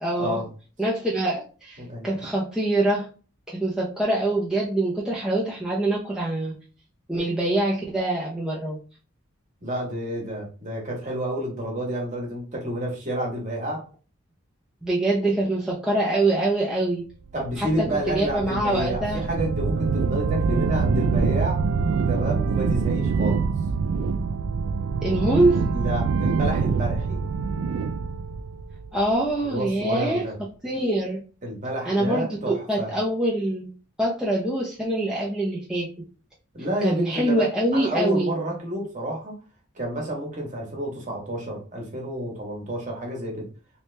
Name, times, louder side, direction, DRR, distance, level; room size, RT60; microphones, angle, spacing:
voice 1, 0.0-0.4 0.8-3.1 3.5-6.5 7.1-8.8 14.8-17.0 17.6-19.2 25.0-25.7 28.9-30.2 30.6-31.2 31.9-33.7 34.0-35.9 36.8-38.3, right 1 dB, 5° right, -5 dB, 0.5 m, -24 dB
voice 2, 1.8-2.1 9.6-13.8 17.3-21.6 22.1-23.4 25.7-27.2 29.4-30.3 31.4-32.9 36.5-37.5 37.7-39.3 39.7-43.5, right 1 dB, 35° right, -1 dB, 1.1 m, -29 dB
sound 1, 17.4-29.4, right 5 dB, 90° right, 0.3 m, -25 dB
3.2 x 2.9 x 3.2 m, 0.36 s
head